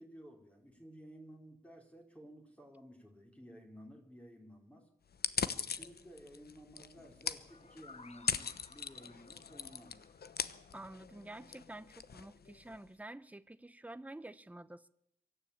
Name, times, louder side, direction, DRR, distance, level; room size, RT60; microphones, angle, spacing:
voice 1, 0.0-4.9 5.6-10.1, equal, 10° left, 4.2 m, -55 dB
sound 1, 5.1-12.9, left 6 dB, 75° left, 0.9 m, -41 dB
sound 2, 7.5-11.2, left 4 dB, 45° left, 1.2 m, -59 dB
voice 2, 10.7-14.9, right 1 dB, 10° right, 0.8 m, -49 dB
24.0 x 13.0 x 8.7 m
wide cardioid pair, 120°, 16 cm